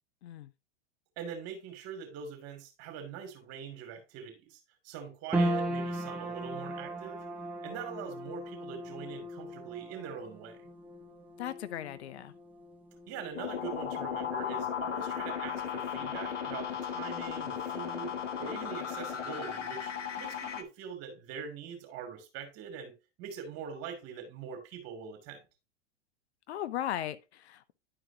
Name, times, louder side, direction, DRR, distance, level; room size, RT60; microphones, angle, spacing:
voice 1, 1.2-7.2 7.6-10.7 13.1-25.4, right 7 dB, 40° right, 2.9 m, -43 dB
sound 1, 5.3-17.7 18.0-18.9 19.4-19.5, right 1 dB, 5° right, 2.0 m, -38 dB
voice 2, 11.4-12.3 26.5-27.7, left 11 dB, 65° left, 0.8 m, -37 dB
sound 2, 13.4-20.6, left 8 dB, 90° left, 1.2 m, -36 dB
11.0 x 4.9 x 2.8 m
hypercardioid pair, 110°, 36 cm